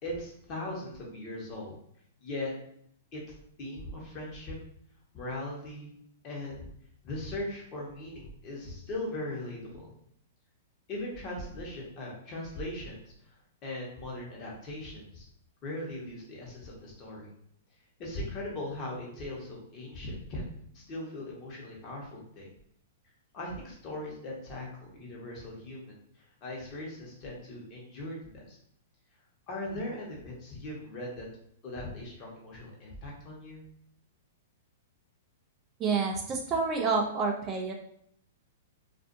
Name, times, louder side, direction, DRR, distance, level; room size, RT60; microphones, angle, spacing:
voice 1, 0.0-1.7 2.2-2.5 3.1-3.2 3.6-4.5 5.1-5.9 6.2-6.7 7.0-9.9 10.9-13.0 13.6-15.3 15.6-17.3 18.0-20.5 20.7-22.5 23.3-24.7 25.0-26.0 26.4-28.6 29.5-31.3 31.6-33.6, left 1 dB, 35° left, -3 dB, 1.0 m, -39 dB
voice 2, 35.8-37.7, right 4 dB, 30° right, 1 dB, 0.4 m, -28 dB
2.5 x 2.4 x 2.5 m, 0.68 s
hypercardioid pair, 130°, 0 cm